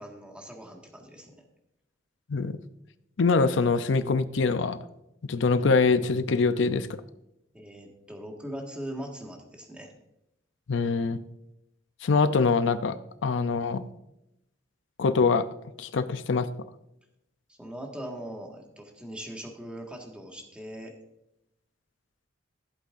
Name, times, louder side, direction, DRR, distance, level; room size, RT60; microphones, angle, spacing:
voice 1, 0.0-1.4 7.5-9.9 17.5-20.9, right 1 dB, 5° right, 1 dB, 1.6 m, -40 dB
voice 2, 3.2-4.8 5.3-7.0 10.7-11.2 12.0-13.0 13.2-13.9 15.0-15.4 15.8-16.5, left 4 dB, 70° left, 12 dB, 0.5 m, -24 dB
15.0 x 8.3 x 2.5 m, 0.84 s
head